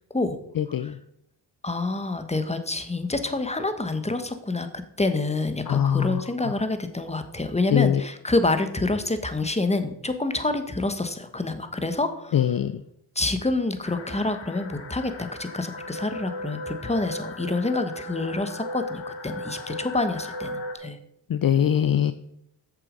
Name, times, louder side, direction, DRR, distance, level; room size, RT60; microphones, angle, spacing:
voice 1, 0.6-0.9 5.7-6.2 7.7-8.0 12.3-12.8 21.3-22.1, left 9 dB, 50° left, 11 dB, 0.6 m, -22 dB
voice 2, 1.6-12.4 13.1-21.0, left 2 dB, 15° left, 9 dB, 1.3 m, -27 dB
sound 1, 13.8-20.7, left 1 dB, 80° left, 1.6 m, -36 dB
8.4 x 6.9 x 5.3 m, 0.75 s
cardioid pair, 55°, 45 cm